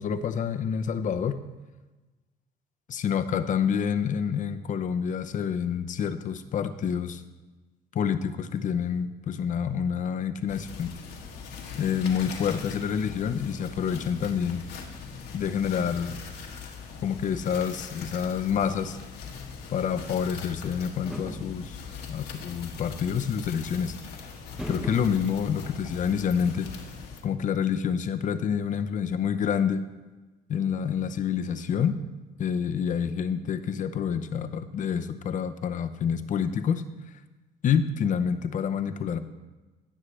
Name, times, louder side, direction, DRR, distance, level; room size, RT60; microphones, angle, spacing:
voice 1, 0.0-1.4 2.9-7.2 7.9-10.9 11.8-14.6 15.3-16.2 17.0-19.0 19.7-21.8 22.1-23.9 24.7-26.7 27.2-29.8 30.5-32.0 32.4-36.8 37.6-39.2, left 7 dB, 50° left, 10 dB, 0.7 m, -28 dB
sound 1, 10.5-27.2, left 5 dB, 70° left, 1.5 m, -41 dB
sound 2, 21.0-22.0 23.1-23.2 24.4-26.5, equal, 5° right, 0.8 m, -40 dB
17.5 x 6.5 x 3.3 m, 1.2 s
cardioid pair, 110°, 17 cm